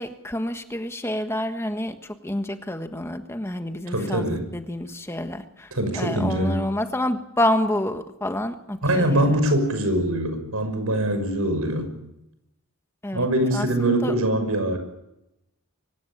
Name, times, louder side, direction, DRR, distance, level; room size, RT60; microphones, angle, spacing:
voice 1, 0.0-5.7 5.9-9.2 13.0-14.1, left 1 dB, 10° left, 7 dB, 1.3 m, -28 dB
voice 2, 3.9-4.5 5.7-6.6 8.8-11.9 13.1-14.8, right 1 dB, 80° right, 8 dB, 5.9 m, -23 dB
24.5 x 17.5 x 10.0 m, 0.87 s
head